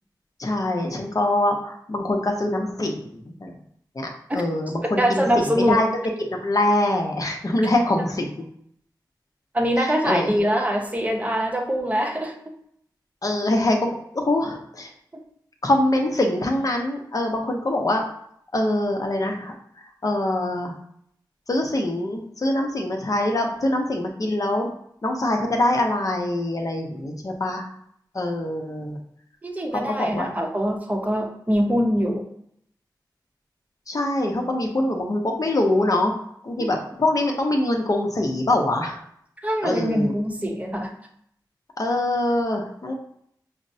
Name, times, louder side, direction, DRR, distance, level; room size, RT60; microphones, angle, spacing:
voice 1, 0.4-3.5 3.9-5.9 6.2-8.5 9.8-10.3 13.2-14.9 15.6-18.0 18.5-19.5 20.0-20.7 21.5-24.7 25.0-27.7 28.1-29.0 30.0-30.3 33.9-36.1 36.4-39.0 39.6-40.1 41.8-42.9, left 1 dB, 50° left, 2 dB, 0.7 m, -24 dB
voice 2, 5.0-5.8 9.5-12.3 29.4-32.3 39.4-40.9, equal, 20° right, 1 dB, 0.7 m, -23 dB
5.0 x 2.0 x 2.6 m, 0.69 s
cardioid pair, 45°, 8 cm